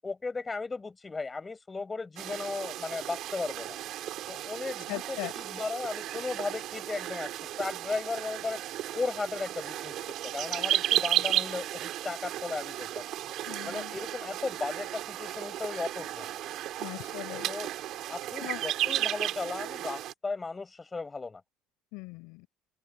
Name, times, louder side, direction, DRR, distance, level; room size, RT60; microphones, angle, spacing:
voice 1, 0.0-3.8 4.3-8.6 8.9-13.1 13.6-16.4 17.5-17.7 18.1-21.4, left 4 dB, 10° left, 7.8 m, -36 dB
sound 1, 2.2-20.1, right 13 dB, 45° right, 3.2 m, -34 dB
voice 2, 4.9-5.3 13.5-14.0 16.8-17.5 18.4-18.6 21.9-22.5, left 26 dB, 75° left, 6.5 m, -39 dB
open air
cardioid pair, 180°, 0 cm